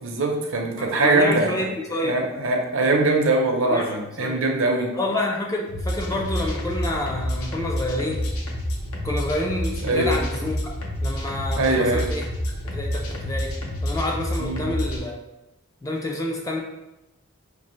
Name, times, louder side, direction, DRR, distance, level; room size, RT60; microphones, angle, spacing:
voice 1, 0.0-1.5 2.0-4.9 9.8-10.1 11.6-12.1 14.4-14.6, right 2 dB, 65° right, 2 dB, 0.6 m, -22 dB
voice 2, 0.8-2.2 3.6-4.4 4.9-8.3 9.0-10.8 11.0-12.3 12.7-13.6 13.8-15.2 15.8-16.6, left 1 dB, 15° left, 0 dB, 0.3 m, -28 dB
sound 1, 5.7-15.0, equal, 85° left, 0.8 m, -28 dB
5.3 x 2.4 x 3.0 m, 0.96 s
head